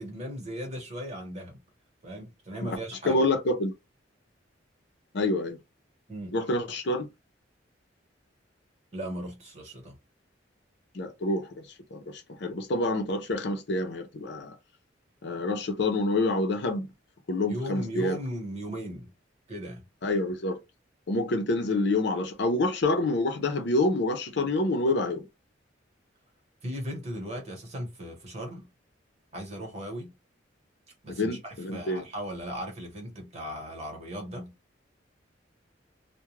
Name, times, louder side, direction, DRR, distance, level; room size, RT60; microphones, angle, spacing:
voice 1, 0.0-1.6 2.0-3.2 6.1-6.4 8.9-10.0 17.5-19.1 19.5-19.8 26.6-28.7 29.3-30.1 31.0-34.5, equal, 35° right, 1.1 m, -37 dB
voice 2, 3.1-3.7 5.1-5.6 6.3-7.1 10.9-11.6 11.9-14.6 15.2-16.9 17.3-18.2 20.0-20.6 21.1-25.2 31.1-32.0, left 2 dB, 65° left, 0.6 m, -27 dB
2.3 x 2.2 x 3.0 m
head